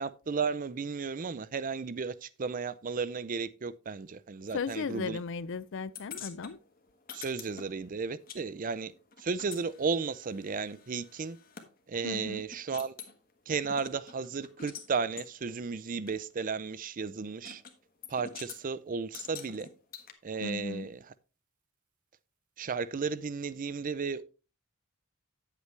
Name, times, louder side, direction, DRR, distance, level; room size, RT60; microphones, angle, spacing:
voice 1, 0.0-5.2 7.1-8.9 9.2-11.4 11.9-12.9 13.5-17.6 18.1-19.7 20.2-21.0 22.6-24.2, right 5 dB, 40° right, 0.5 m, -34 dB
voice 2, 4.5-6.6 12.0-12.5 20.4-20.9, left 5 dB, 60° left, 0.5 m, -36 dB
sound 1, 5.9-8.4 8.7-11.7 12.1-12.2 12.5-13.1 13.6-14.9 15.2-15.3 16.1-16.2 17.4-17.7 18.0-18.6 19.1-20.1, left 6 dB, 40° left, 1.4 m, -46 dB
9.4 x 8.2 x 3.3 m
head